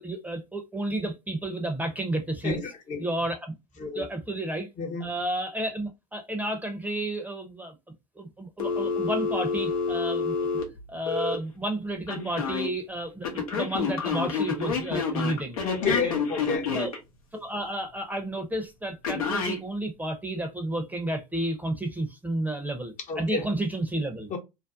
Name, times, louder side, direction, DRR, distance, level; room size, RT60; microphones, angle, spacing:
voice 1, 0.0-2.6 3.0-3.5 3.9-4.7 5.0-7.7 8.2-10.3 10.9-15.6 15.9-16.1 16.7-16.9 17.3-24.3, right 1 dB, 10° right, 0.7 m, -31 dB
voice 2, 2.4-3.0 3.8-4.0 4.8-5.1 15.6-16.7 23.1-23.5 24.3-24.4, left 5 dB, 45° left, 0.8 m, -30 dB
Telephone, 8.6-11.4 12.1-12.7 13.2-17.0 19.0-19.6, left 5 dB, 80° left, 0.8 m, -28 dB
2.5 x 2.0 x 2.4 m
hypercardioid pair, 75°, 18 cm